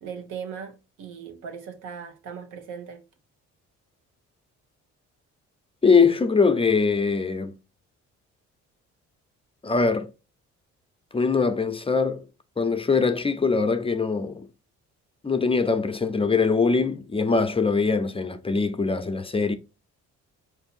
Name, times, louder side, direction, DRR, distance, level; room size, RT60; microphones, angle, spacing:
voice 1, 0.0-3.0, right 7 dB, 90° right, 1.1 m, -38 dB
voice 2, 5.8-7.6 9.6-10.1 11.1-12.2 12.6-14.5 15.2-19.6, left 4 dB, 20° left, 0.6 m, -22 dB
4.4 x 2.6 x 4.1 m
cardioid pair, 90°, 30 cm